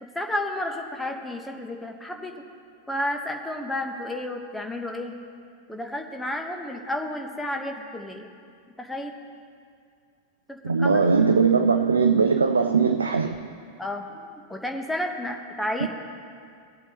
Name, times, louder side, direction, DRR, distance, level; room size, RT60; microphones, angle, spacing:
voice 1, 0.0-2.3 2.9-5.1 5.7-8.3 8.8-9.2 10.5-11.0 13.8-15.9, left 1 dB, 5° left, 3 dB, 1.0 m, -31 dB
voice 2, 10.6-13.4 15.8-15.9, right 5 dB, 75° right, 7 dB, 0.4 m, -20 dB
18.0 x 8.1 x 2.9 m, 2.3 s
figure-of-eight pair, 90°, 0 cm